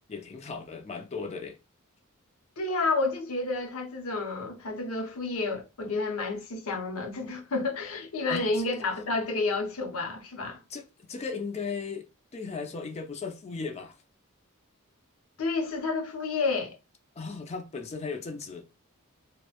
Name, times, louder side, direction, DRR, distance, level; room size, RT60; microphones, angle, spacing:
voice 1, 0.1-1.6 8.3-8.6 10.7-12.1 12.3-14.0 17.2-18.6, left 4 dB, 30° left, 0.4 m, -36 dB
voice 2, 2.6-10.6 15.4-16.8, left 3 dB, 75° left, 0.7 m, -30 dB
2.9 x 2.1 x 2.3 m
head